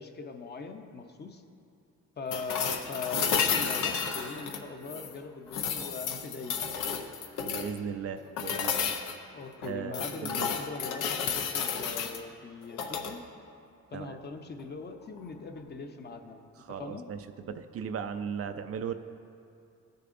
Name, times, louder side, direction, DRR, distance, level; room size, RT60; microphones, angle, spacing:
voice 1, 0.0-1.4 2.2-7.0 9.3-13.2 13.9-16.4 16.7-17.1, left 4 dB, 35° left, 5 dB, 0.7 m, -41 dB
sound 1, 2.3-5.1 5.5-7.8 8.4-9.2 9.6-12.2 12.7-13.1 15.2-15.3, left 6 dB, 85° left, 0.7 m, -32 dB
voice 2, 7.4-8.9 9.6-10.5 13.9-14.2 16.6-18.9, right 7 dB, 50° right, 9 dB, 0.5 m, -37 dB
15.0 x 6.7 x 2.6 m, 2.4 s
cardioid pair, 90°, 30 cm